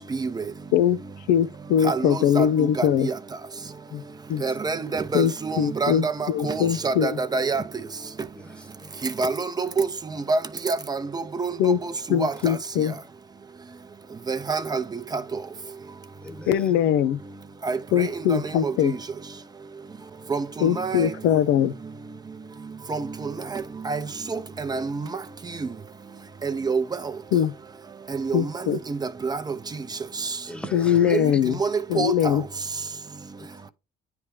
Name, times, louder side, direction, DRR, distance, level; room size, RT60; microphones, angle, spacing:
voice 1, 0.1-0.4 1.8-2.5 2.8-3.1 4.4-7.6 9.0-9.9 10.3-11.9 12.2-12.3 14.3-14.8 15.1-15.2 17.6-19.0 20.3-21.1 22.9-24.0 24.3-25.0 25.6-25.7 26.4-26.8 28.1-28.5 28.9-29.0 29.2-29.5 31.6-31.7 32.0-32.4, right 4 dB, 25° right, 0.6 m, -27 dB
voice 2, 1.3-3.1 3.9-4.0 4.3-4.4 5.1-7.2 11.6-11.8 12.1-13.0 16.5-17.2 17.9-18.9 20.6-21.7 27.3-27.5 28.3-28.8 30.7-31.6 31.9-32.4, left 9 dB, 85° left, 0.6 m, -22 dB
voice 3, 4.3-4.9 8.3-9.1 12.3-12.4 12.7-13.1 16.2-16.9 30.5-31.4 33.4-33.7, equal, 5° left, 1.0 m, -42 dB
9.6 x 3.4 x 3.1 m
cardioid pair, 110°, 17 cm